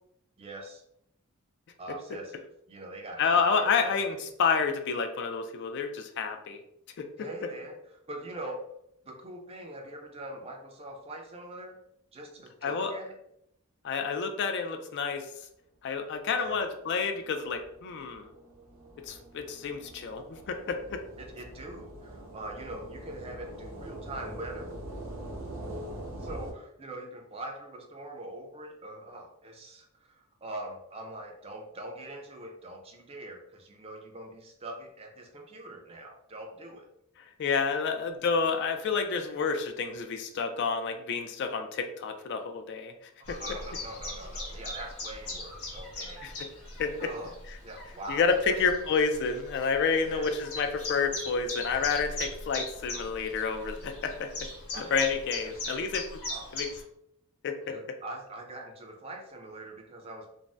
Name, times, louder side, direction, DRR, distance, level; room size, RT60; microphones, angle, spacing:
voice 1, 0.4-0.8 1.8-4.2 7.2-7.8 8.1-8.6 9.0-11.8 12.1-13.2 16.3-16.6 21.2-24.7 26.2-36.8 37.8-37.9 43.3-46.2 47.0-47.3 47.6-48.6 50.0-50.3 54.7-55.0 55.5-55.8 56.3-56.6 57.7-60.3, right 1 dB, 25° right, 2 dB, 0.4 m, -43 dB
voice 2, 3.2-6.6 7.0-7.3 12.6-12.9 13.8-15.3 15.8-18.3 19.0-21.0 37.2-43.1 46.2-46.5 46.8-47.0 48.1-54.3 54.7-56.2 56.5-56.7 57.4-57.7, left 5 dB, 50° left, 6 dB, 0.3 m, -29 dB
sound 1, 16.4-26.5, right 1 dB, 60° right, 0.8 m, -43 dB
Chirp tweet, 43.2-56.8, left 2 dB, 70° left, 0.8 m, -40 dB
2.5 x 2.0 x 3.3 m, 0.75 s
head